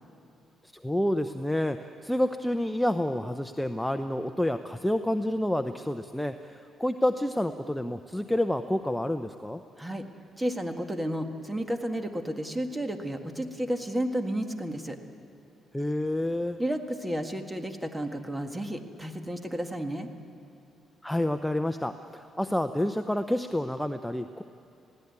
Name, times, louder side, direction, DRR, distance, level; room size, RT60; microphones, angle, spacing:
voice 1, 0.8-9.6 15.7-16.6 21.0-24.4, left 1 dB, 5° left, 8 dB, 0.7 m, -29 dB
voice 2, 10.4-15.0 16.6-20.1, right 1 dB, 15° right, 6 dB, 1.8 m, -32 dB
20.5 x 16.5 x 9.6 m, 2.8 s
cardioid pair, 90°, 0 cm